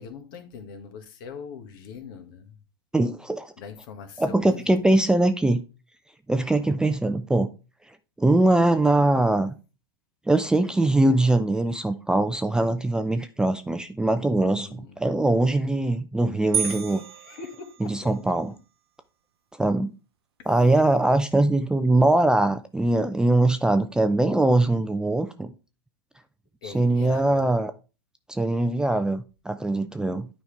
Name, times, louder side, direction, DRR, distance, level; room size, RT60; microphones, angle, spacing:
voice 1, 0.0-2.6 3.6-4.8 14.6-14.9 16.6-18.3 26.6-27.5, left 6 dB, 55° left, 1.7 m, -42 dB
voice 2, 2.9-3.5 4.2-5.6 6.3-7.5 8.2-9.5 10.3-14.7 15.0-17.0 17.8-18.5 19.6-19.9 20.5-25.5 26.6-27.7 28.3-30.3, right 2 dB, 5° right, 0.5 m, -22 dB
sound 1, 16.5-18.3, right 8 dB, 75° right, 0.4 m, -31 dB
9.5 x 5.4 x 3.4 m
hypercardioid pair, 100°, 13 cm